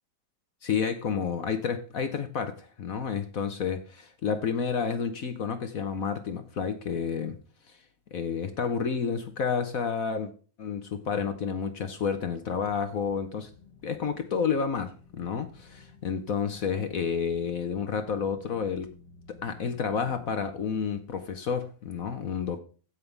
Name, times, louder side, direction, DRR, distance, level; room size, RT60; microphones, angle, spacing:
voice 1, 0.6-7.4 7.7-7.8 8.1-10.3 10.6-13.5 13.8-18.9 19.3-22.6, left 6 dB, 55° left, 1.3 m, -30 dB
sound 1, 12.5-20.6, left 4 dB, 90° right, 4.5 m, -54 dB
15.0 x 5.5 x 3.3 m
omnidirectional pair, 1.9 m